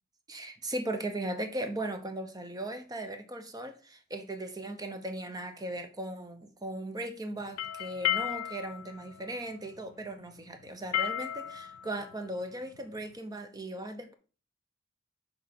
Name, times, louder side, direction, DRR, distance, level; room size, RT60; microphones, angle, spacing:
voice 1, 0.3-14.1, right 1 dB, 20° right, 0.7 m, -38 dB
sound 1, 7.4-13.1, left 11 dB, 70° left, 0.3 m, -35 dB
6.3 x 4.2 x 4.2 m
head